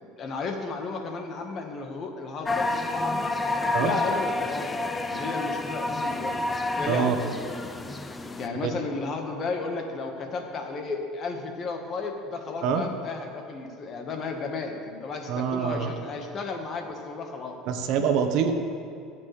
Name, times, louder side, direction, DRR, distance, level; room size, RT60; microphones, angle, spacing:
voice 1, 0.0-3.3 3.8-6.3 6.8-7.7 8.4-17.6, left 4 dB, 40° left, 4 dB, 1.4 m, -33 dB
sound 1, 2.5-8.5, left 2 dB, 15° left, 0.5 m, -29 dB
voice 2, 15.3-15.9 17.7-18.5, right 7 dB, 65° right, 6 dB, 1.1 m, -25 dB
19.5 x 7.5 x 3.3 m, 2.5 s
supercardioid pair, 115°, 0 cm